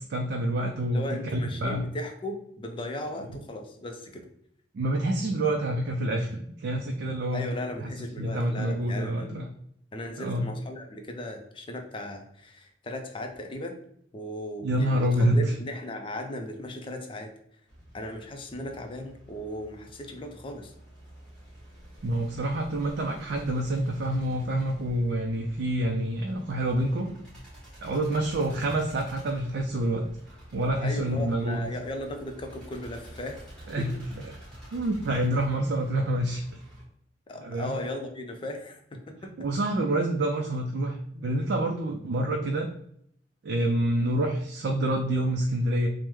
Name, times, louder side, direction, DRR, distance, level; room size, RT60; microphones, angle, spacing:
voice 1, 0.0-1.0 1.3-1.8 4.7-7.5 7.8-7.9 8.2-9.4 10.2-10.5 14.6-15.6 22.0-27.1 27.8-31.6 33.7-34.3 34.7-36.6 37.4-37.7 39.4-42.7 43.4-45.9, right 1 dB, 65° right, 2 dB, 0.4 m, -27 dB
voice 2, 0.9-4.3 7.3-9.3 9.9-13.8 14.1-17.3 17.9-20.7 30.8-33.5 33.8-34.0 37.3-39.3, left 1 dB, 30° left, 5 dB, 0.4 m, -37 dB
sound 1, 17.7-36.8, equal, 5° left, 1.1 m, -49 dB
3.0 x 2.0 x 3.4 m, 0.70 s
head